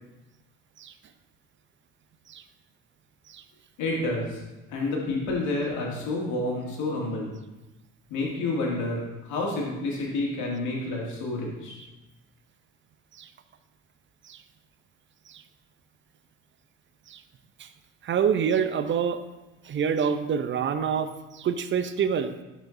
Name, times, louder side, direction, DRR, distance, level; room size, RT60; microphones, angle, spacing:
voice 1, 3.8-4.4 4.7-7.3 8.1-11.8, left 2 dB, 60° left, -2 dB, 2.2 m, -29 dB
voice 2, 18.0-19.2 19.6-22.3, right 7 dB, 35° right, 11 dB, 0.6 m, -26 dB
11.0 x 5.1 x 2.6 m, 1.0 s
hypercardioid pair, 60°, 33 cm